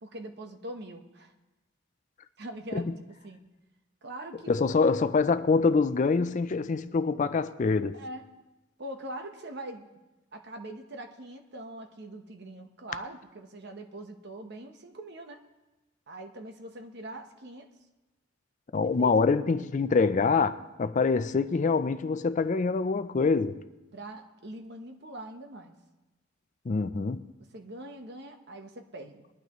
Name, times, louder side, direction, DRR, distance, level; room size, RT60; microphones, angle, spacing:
voice 1, 0.0-1.3 2.4-3.4 4.0-5.1 7.9-8.3 8.8-9.9 10.3-15.4 16.1-17.7 18.8-19.1 23.9-25.7 27.4-29.3, right 1 dB, 55° right, 1.1 m, -42 dB
voice 2, 4.5-8.0 18.7-23.6 26.7-27.2, left 4 dB, 40° left, 0.4 m, -25 dB
20.5 x 12.0 x 3.0 m
head